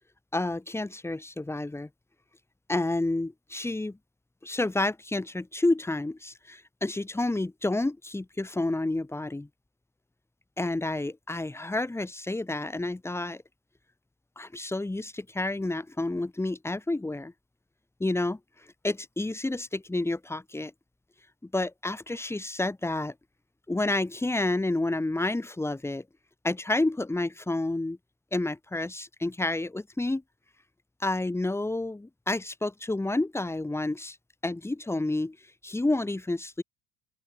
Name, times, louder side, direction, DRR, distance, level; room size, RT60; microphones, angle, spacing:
voice 1, 0.3-1.9 2.7-4.0 4.4-9.5 10.6-13.4 14.4-17.3 18.0-18.4 18.8-20.7 21.5-23.1 23.7-26.0 26.4-28.0 28.3-30.2 31.0-34.2 34.4-35.4 35.6-36.6, left 2 dB, 10° left, 1.5 m, -29 dB
open air
supercardioid pair, 80°, 31 cm